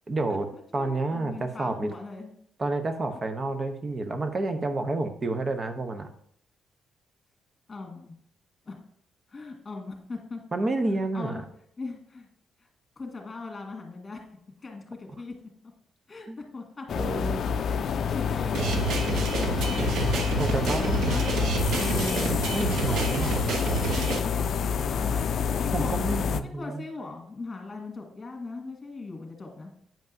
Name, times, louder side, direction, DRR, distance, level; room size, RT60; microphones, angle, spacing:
voice 1, 0.1-1.9 2.6-6.1 10.5-11.4 16.3-16.4 17.0-17.6 20.4-21.4 21.7-23.3 25.7-26.8, right 2 dB, 35° right, 8 dB, 0.8 m, -30 dB
voice 2, 0.7-2.3 7.7-8.2 8.7-8.8 9.3-10.4 11.1-11.5 11.8-12.3 12.6-12.7 13.0-14.2 14.6-15.3 16.1-16.9 17.4-17.5 17.8-18.8 19.5-19.9 20.5-21.3 21.6-22.4 22.7-26.0 26.4-29.7, left 3 dB, 30° left, 1 dB, 1.9 m, -39 dB
sound 1, 16.9-26.4, left 6 dB, 60° left, 0.4 m, -28 dB
sound 2, 18.5-24.2, right 4 dB, 75° right, 0.8 m, -29 dB
8.8 x 5.3 x 2.7 m, 0.68 s
cardioid pair, 90°, 0 cm